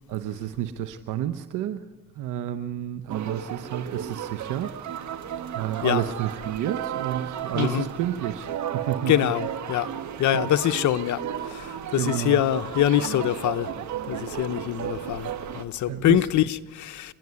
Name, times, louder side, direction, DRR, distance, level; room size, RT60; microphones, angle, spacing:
voice 1, 0.1-1.8 2.2-4.7 5.5-9.3 10.3-10.8 11.9-12.4 14.3-14.4 15.9-16.3, right 11 dB, 85° right, 0.9 m, -30 dB
sound 1, 3.1-15.6, right 9 dB, 70° right, 1.3 m, -34 dB
voice 2, 7.5-7.9 9.1-9.9 10.2-13.7 14.1-17.1, left 12 dB, 70° left, 0.9 m, -24 dB
30.0 x 11.0 x 9.6 m
cardioid pair, 90°, 30 cm